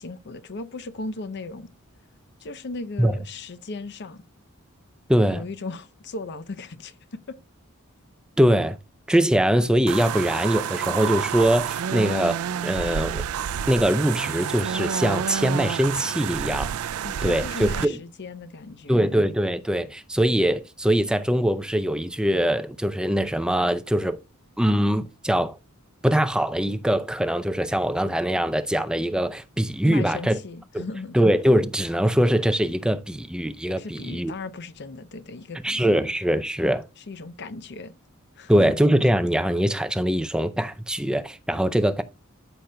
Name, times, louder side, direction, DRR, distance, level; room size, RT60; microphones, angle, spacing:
voice 1, 0.0-1.7 2.4-4.2 5.3-7.4 17.0-19.2 29.8-31.2 33.8-36.0 37.0-37.9 38.4-38.7, left 3 dB, 55° left, 0.7 m, -37 dB
voice 2, 5.1-5.4 8.4-8.8 9.1-13.2 13.7-16.7 17.2-17.7 18.9-24.2 24.6-25.6 26.0-30.3 30.7-30.8 31.1-34.3 35.6-36.9 38.5-42.0, equal, 5° right, 0.5 m, -22 dB
sound 1, 9.9-17.9, right 8 dB, 85° right, 0.4 m, -29 dB
13.5 x 5.9 x 2.2 m
head